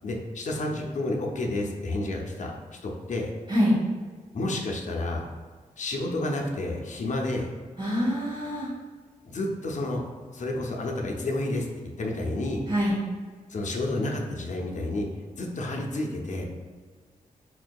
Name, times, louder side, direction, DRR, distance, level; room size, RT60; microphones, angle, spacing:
voice 1, 0.0-3.3 4.3-5.3 5.8-7.5 9.2-10.1 10.3-11.7 12.0-12.6 13.5-15.1 15.4-16.5, left 2 dB, 55° left, 0 dB, 0.6 m, -30 dB
voice 2, 7.8-8.7 12.7-13.0, equal, 35° right, -9 dB, 1.2 m, -24 dB
4.2 x 2.6 x 2.3 m, 1.5 s
cardioid pair, 55°, 14 cm